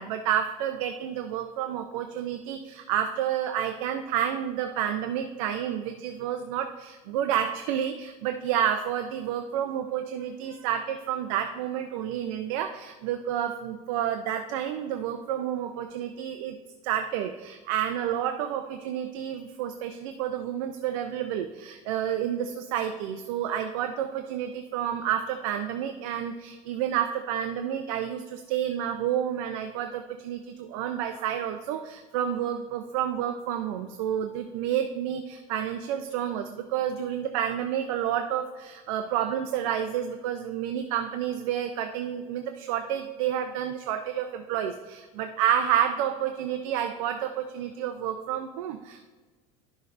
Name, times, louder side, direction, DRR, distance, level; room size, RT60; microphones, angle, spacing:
voice 1, 0.0-16.6 16.8-49.1, right 10 dB, 70° right, 6 dB, 0.6 m, -30 dB
11.5 x 6.3 x 2.6 m, 1.3 s
cardioid pair, 170°, 18 cm